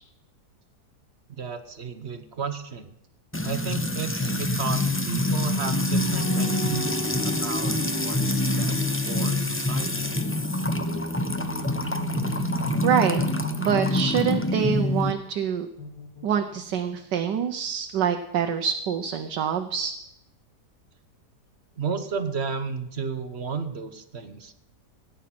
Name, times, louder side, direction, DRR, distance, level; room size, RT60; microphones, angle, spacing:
voice 1, 1.4-2.9 3.4-10.1 21.8-24.5, right 5 dB, 45° right, 10 dB, 1.1 m, -33 dB
Music / Water tap faucet / Trickle dribble, 3.3-15.1, left 1 dB, 15° left, 0.4 m, -26 dB
sound 1, 6.1-9.8 11.2-15.0 15.8-17.0, right 1 dB, 60° left, 3.2 m, -37 dB
voice 2, 12.8-13.2 13.6-15.7 16.2-19.9, right 8 dB, 80° right, 5 dB, 1.4 m, -25 dB
16.5 x 9.8 x 5.9 m, 0.81 s
omnidirectional pair, 1.8 m